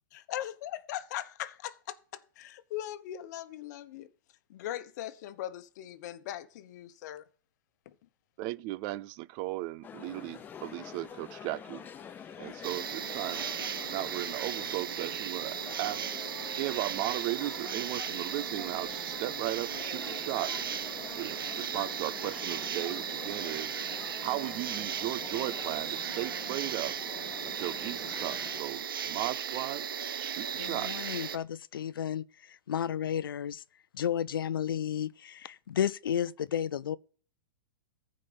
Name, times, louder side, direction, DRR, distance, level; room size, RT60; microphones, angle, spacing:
voice 1, 0.3-4.1 4.5-7.2 7.8-7.9, left 12 dB, 55° left, 1.2 m, -40 dB
voice 2, 8.4-11.9 12.4-13.5 13.9-16.1 16.6-20.6 21.1-23.8 24.2-27.0 27.4-29.9 30.1-31.0, right 17 dB, 35° right, 0.5 m, -36 dB
sound 1, 9.8-28.6, left 8 dB, 15° left, 0.6 m, -47 dB
sound 2, 10.0-28.7, right 1 dB, 15° right, 4.1 m, -64 dB
sound 3, 12.6-31.4, right 8 dB, 90° right, 1.0 m, -36 dB
voice 3, 30.6-33.6 33.9-37.0, left 9 dB, 85° left, 0.6 m, -32 dB
14.5 x 5.1 x 6.9 m
hypercardioid pair, 140°, 11 cm